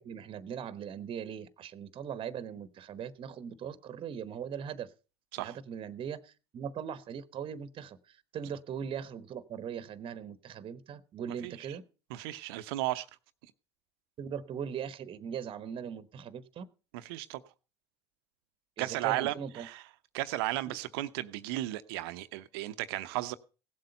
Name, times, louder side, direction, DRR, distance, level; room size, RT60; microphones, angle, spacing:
voice 1, 0.0-4.9 5.4-11.8 14.2-16.7 18.8-19.7 20.7-20.8, right 8 dB, 40° right, 1.0 m, -40 dB
voice 2, 12.1-13.1 16.9-17.4 18.8-19.8 20.1-23.3, right 16 dB, 70° right, 0.7 m, -34 dB
16.5 x 7.7 x 5.4 m
hypercardioid pair, 70°, 13 cm